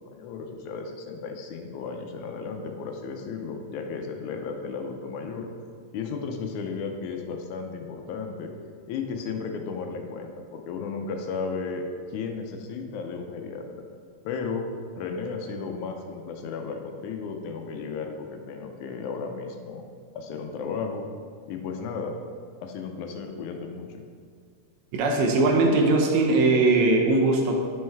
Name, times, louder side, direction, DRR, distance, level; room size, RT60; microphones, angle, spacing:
voice 1, 0.1-5.5 5.9-8.5 8.9-11.8 12.1-13.7 14.2-14.7 15.0-19.9 20.1-21.0 21.5-22.2 22.6-24.0, left 5 dB, 80° left, 4 dB, 2.0 m, -34 dB
voice 2, 24.9-27.6, right 2 dB, 75° right, 1 dB, 2.0 m, -20 dB
7.8 x 5.3 x 3.5 m, 2.1 s
omnidirectional pair, 3.5 m